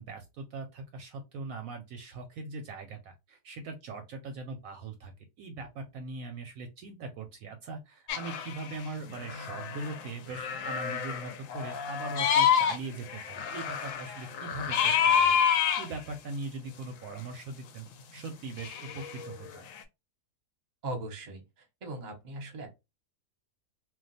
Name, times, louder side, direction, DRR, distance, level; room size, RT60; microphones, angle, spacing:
voice 1, 0.0-5.1 5.4-17.9 18.1-19.7, right 3 dB, 70° right, 5 dB, 0.9 m, -41 dB
sound 1, 8.1-8.8 9.0-10.1 10.3-12.8 13.1-15.9 18.6-19.8, left 8 dB, 70° left, 0.8 m, -28 dB
voice 2, 20.8-22.7, right 2 dB, 40° right, 3 dB, 0.8 m, -39 dB
2.3 x 2.3 x 3.9 m, 0.23 s
omnidirectional pair, 1.6 m